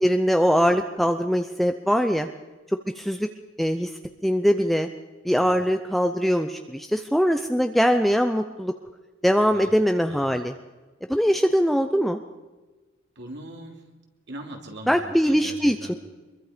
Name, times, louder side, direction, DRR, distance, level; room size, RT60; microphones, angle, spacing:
voice 1, 0.0-2.3 3.0-3.3 3.6-3.9 4.2-4.9 5.2-8.7 9.2-10.5 11.1-12.2 14.9-15.9, equal, ahead, 6 dB, 0.7 m, -22 dB
voice 2, 13.1-13.8 14.3-16.0, right 1 dB, 60° right, 2 dB, 3.0 m, -41 dB
24.5 x 22.5 x 5.1 m, 1.2 s
head